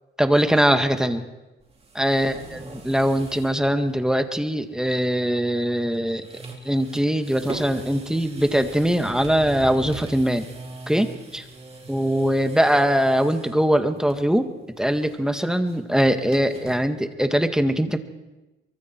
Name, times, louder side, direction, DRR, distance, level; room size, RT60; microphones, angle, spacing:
voice 1, 0.2-1.2 1.9-2.3 2.8-6.3 6.6-10.5 10.9-11.1 11.3-11.4 11.9-14.5 14.8-18.0, equal, 5° right, 7 dB, 1.9 m, -21 dB
sound 1, 1.6-3.6 3.9-4.0 5.7-5.9 6.2-13.6 14.0-14.4 14.7-16.8, right 2 dB, 30° right, 4.4 m, -40 dB
24.0 x 24.0 x 4.7 m, 1.1 s
cardioid pair, 90°, 20 cm